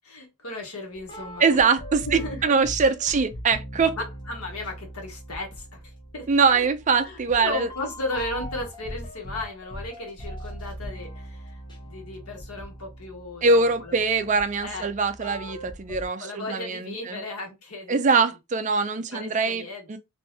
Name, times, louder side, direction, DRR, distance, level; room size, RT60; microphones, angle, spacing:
voice 1, 0.0-1.8 2.1-2.5 3.1-3.2 4.0-6.7 7.0-13.4 13.8-13.9 14.6-14.9 16.2-18.2 19.1-20.0, left 2 dB, 85° left, 1.4 m, -36 dB
sound 1, 0.9-16.1, equal, 20° left, 0.8 m, -40 dB
voice 2, 1.4-4.0 6.3-7.7 13.4-17.2 17.9-20.0, right 4 dB, 35° right, 0.4 m, -23 dB
3.4 x 2.6 x 2.7 m
head